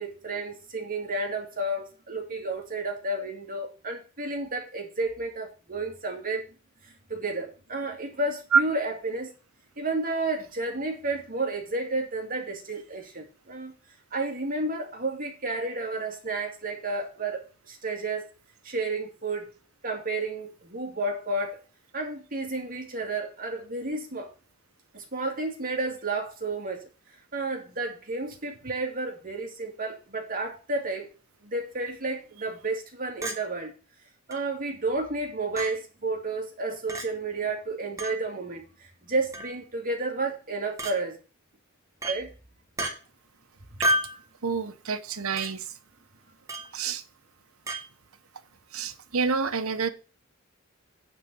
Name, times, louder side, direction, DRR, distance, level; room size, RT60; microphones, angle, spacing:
voice 1, 0.0-6.4 6.8-9.3 9.8-13.7 14.1-18.3 18.6-19.5 19.8-21.6 21.9-24.3 24.9-26.9 27.3-31.1 31.4-33.7 34.3-41.2 42.1-42.3, right 2 dB, 45° right, 2.4 m, -31 dB
Chink clink, 33.2-33.4 34.3-34.4 35.6-35.7 36.9-37.1 38.0-38.2 39.3-39.6 40.8-41.0 42.0-42.2 42.8-42.9 43.8-44.2 45.4-45.5 46.5-46.7 47.7-47.8, equal, 15° right, 2.1 m, -29 dB
voice 2, 44.4-45.7 46.7-47.0 48.7-49.9, right 5 dB, 85° right, 1.0 m, -27 dB
9.6 x 4.2 x 7.5 m
head